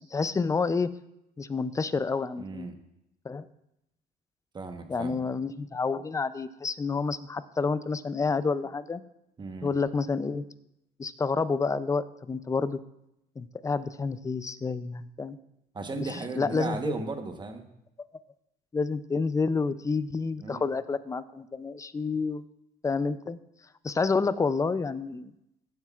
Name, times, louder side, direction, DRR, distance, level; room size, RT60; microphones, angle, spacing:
voice 1, 0.1-0.9 1.4-2.7 3.2-3.5 4.9-9.0 9.6-10.5 11.0-12.8 13.4-15.4 15.9-16.1 16.4-16.9 18.7-22.4 22.8-23.4 23.8-25.3, left 4 dB, 20° left, 14 dB, 0.4 m, -29 dB
voice 2, 2.4-2.8 4.5-5.2 9.4-9.7 15.7-17.7 20.4-20.7, right 3 dB, 25° right, 6 dB, 1.1 m, -36 dB
16.0 x 7.5 x 2.4 m, 0.83 s
cardioid pair, 110°, 17 cm